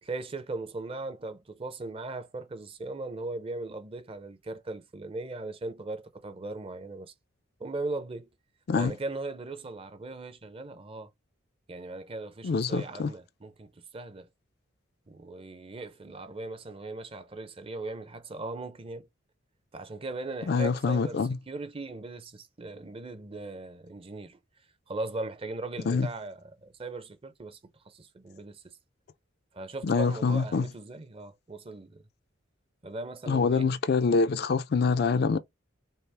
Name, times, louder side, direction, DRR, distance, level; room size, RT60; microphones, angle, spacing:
voice 1, 0.0-7.1 7.6-8.3 8.7-11.1 11.7-14.3 15.1-19.1 19.7-24.4 24.9-27.6 27.9-28.8 29.5-32.0 32.8-33.7, right 2 dB, 30° right, 0.6 m, -38 dB
voice 2, 12.4-13.1 20.5-21.4 25.9-26.1 29.8-30.7 33.3-35.4, left 4 dB, 50° left, 0.4 m, -25 dB
5.5 x 2.0 x 3.3 m
head